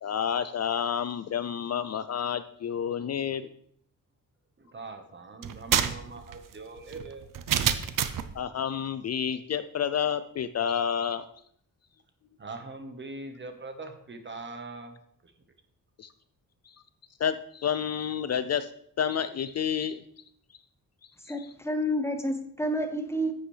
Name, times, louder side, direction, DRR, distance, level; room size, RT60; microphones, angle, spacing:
voice 1, 0.0-3.5 8.3-11.3 16.0-16.1 16.7-16.8 17.2-18.7 19.0-20.0 21.3-21.5, left 8 dB, 50° left, 13 dB, 0.4 m, -29 dB
voice 2, 4.6-7.3 12.4-15.0 15.2-15.3, right 3 dB, 35° right, 7 dB, 1.2 m, -42 dB
sound 1, 5.4-8.3, right 9 dB, 70° right, 0.7 m, -28 dB
voice 3, 21.3-23.3, equal, 5° left, 6 dB, 0.9 m, -29 dB
10.0 x 8.1 x 3.3 m, 0.66 s
wide cardioid pair, 130°, 34 cm